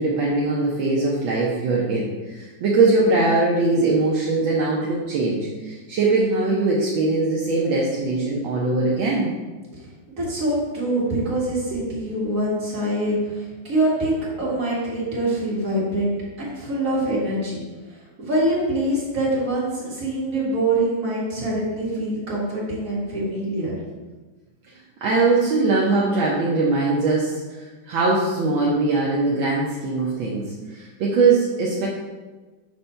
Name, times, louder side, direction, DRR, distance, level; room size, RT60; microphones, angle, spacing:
voice 1, 0.0-9.3 11.7-11.8 25.0-31.9, right 3 dB, 75° right, -4 dB, 1.5 m, -21 dB
voice 2, 10.1-14.1 14.4-17.6 18.2-23.8, right 1 dB, 40° right, -7 dB, 2.1 m, -24 dB
6.6 x 2.6 x 5.5 m, 1.3 s
omnidirectional pair, 2.2 m